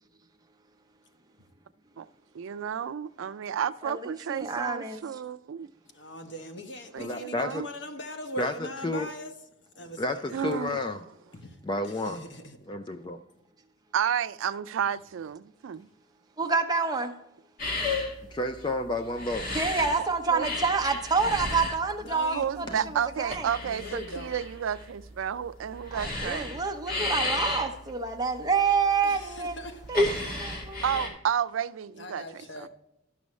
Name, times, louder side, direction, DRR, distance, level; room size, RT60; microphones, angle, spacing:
voice 1, 2.3-5.7 6.9-7.7 10.3-10.8 13.9-15.9 20.3-20.5 22.3-26.6 30.8-32.7, right 8 dB, 90° right, 0.4 m, -31 dB
voice 2, 4.3-5.0 16.4-17.1 19.5-23.4 25.9-29.6 29.9-30.0 30.4-30.8, right 5 dB, 20° right, 0.8 m, -28 dB
voice 3, 5.9-9.3 9.8-10.4 11.3-11.6 11.8-12.6 22.0-22.9 23.6-24.3 29.0-29.9 32.0-32.7, left 1 dB, 65° left, 1.0 m, -40 dB
voice 4, 7.0-7.7 8.4-9.1 10.0-11.0 11.6-12.3 12.7-13.2 18.3-19.5 30.6-30.7, left 2 dB, 25° left, 0.4 m, -31 dB
sound 1, 17.6-20.1 20.4-31.1, left 2 dB, 45° left, 1.9 m, -32 dB
12.0 x 6.2 x 3.1 m
head